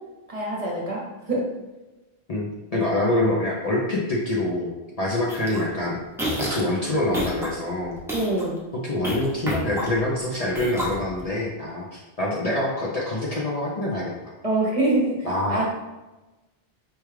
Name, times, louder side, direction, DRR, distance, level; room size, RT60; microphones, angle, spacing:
voice 1, 0.3-1.4 8.1-8.6 14.4-15.2 15.5-15.7, right 2 dB, 40° right, -4 dB, 0.8 m, -24 dB
voice 2, 2.3-6.0 6.4-8.0 8.7-14.1 15.2-15.7, left 1 dB, 45° left, -4 dB, 0.6 m, -25 dB
sound 1, 5.3-5.6 6.1-6.7 7.1-7.5 7.9-8.4 9.0-10.1 10.5-11.3, equal, 5° right, 0.6 m, -29 dB
4.5 x 2.3 x 3.2 m, 1.1 s
omnidirectional pair, 1.1 m